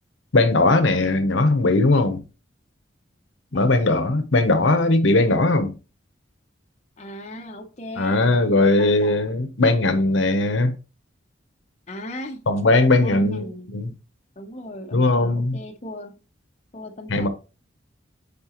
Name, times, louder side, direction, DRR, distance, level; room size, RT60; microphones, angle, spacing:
voice 1, 0.3-2.2 3.5-5.7 8.0-10.7 12.5-13.4 13.7-13.9 14.9-15.6 17.1-17.3, left 2 dB, 70° left, 0.9 m, -19 dB
voice 2, 3.5-4.0 7.0-9.3 11.9-12.5 13.0-13.7 14.4-16.2 16.7-17.3, left 1 dB, 35° left, 0.8 m, -37 dB
8.6 x 4.1 x 3.0 m
head